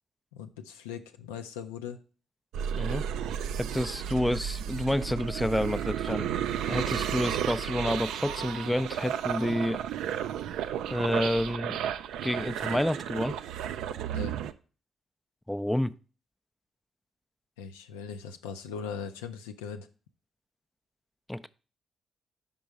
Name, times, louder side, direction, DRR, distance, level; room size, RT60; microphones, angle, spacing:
voice 1, 0.3-2.0 14.1-14.4 17.6-19.9, left 7 dB, 80° left, 6 dB, 0.4 m, -39 dB
sound 1, 2.5-14.5, right 9 dB, 70° right, 0.3 m, -33 dB
voice 2, 2.7-3.0 3.6-6.3 6.7-9.8 10.9-11.8 12.2-13.4 15.5-15.9 21.3-21.5, left 1 dB, 5° left, 13 dB, 0.4 m, -29 dB
5.3 x 5.3 x 4.6 m, 0.36 s
hypercardioid pair, 40°, 0 cm